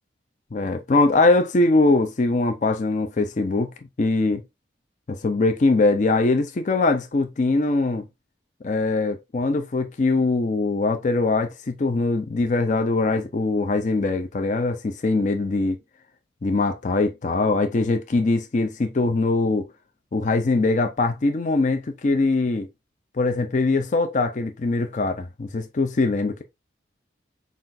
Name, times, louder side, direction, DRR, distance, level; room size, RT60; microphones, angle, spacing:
voice 1, 0.5-3.7 4.0-4.4 5.1-8.1 8.6-15.8 16.4-19.7 20.1-22.7 23.2-26.4, left 3 dB, 45° left, 0.4 m, -22 dB
5.7 x 2.4 x 2.6 m
head